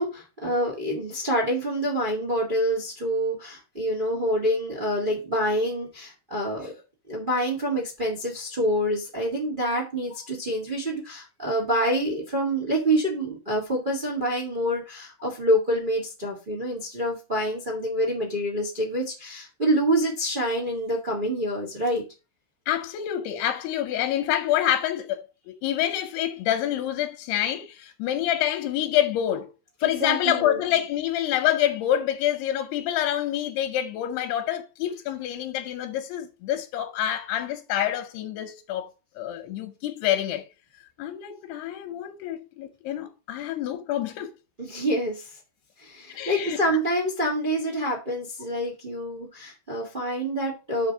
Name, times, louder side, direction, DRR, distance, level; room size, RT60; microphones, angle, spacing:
voice 1, 0.0-6.7 7.1-22.0 30.0-30.6 44.6-45.3 45.8-50.9, equal, 80° right, 0.4 m, -27 dB
voice 2, 22.7-29.5 29.8-38.9 39.2-40.5 41.0-44.3 46.1-46.6, left 11 dB, 85° left, 2.8 m, -27 dB
5.3 x 5.1 x 6.5 m
omnidirectional pair, 4.6 m